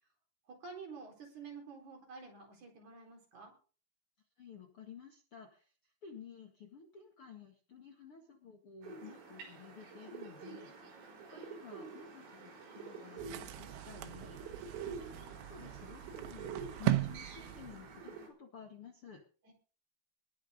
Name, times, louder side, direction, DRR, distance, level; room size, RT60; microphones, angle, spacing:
voice 1, 0.5-3.5 19.4-19.5, right 4 dB, 40° right, 2 dB, 5.3 m, -49 dB
voice 2, 4.4-19.2, left 6 dB, 75° left, 2 dB, 1.2 m, -54 dB
sound 1, 8.8-18.3, right 5 dB, 65° right, 6.3 m, -48 dB
sound 2, 13.2-18.2, right 14 dB, 90° right, 3.7 m, -38 dB
20.5 x 7.0 x 5.1 m, 0.38 s
omnidirectional pair, 5.7 m